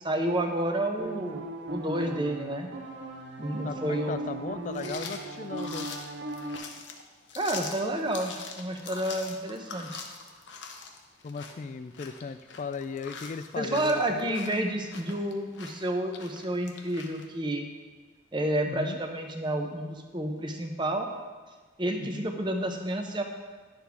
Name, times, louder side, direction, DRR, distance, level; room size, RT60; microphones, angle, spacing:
voice 1, 0.0-2.7 3.4-4.2 7.4-10.0 13.6-17.7 18.3-21.1 21.8-23.2, right 1 dB, 25° right, 4 dB, 0.8 m, -30 dB
sound 1, 1.0-6.6, right 2 dB, 70° right, 1.0 m, -38 dB
voice 2, 3.6-5.9 11.2-14.4 18.7-19.0 22.0-22.3, left 5 dB, 40° left, 12 dB, 0.3 m, -37 dB
sound 2, 4.7-17.3, left 5 dB, 70° left, 0.8 m, -43 dB
10.5 x 6.8 x 3.5 m, 1.3 s
head